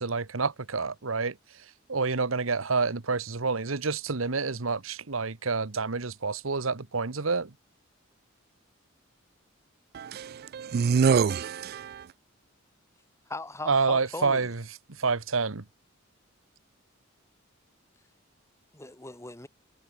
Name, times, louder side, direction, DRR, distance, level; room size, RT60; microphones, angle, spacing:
voice 1, 0.0-7.5 13.7-14.6 14.9-15.6, right 4 dB, 80° right, 1.2 m, -28 dB
voice 2, 9.9-12.0, right 6 dB, 50° right, 0.3 m, -26 dB
voice 3, 13.3-14.5 18.7-19.5, left 2 dB, 15° left, 1.7 m, -39 dB
head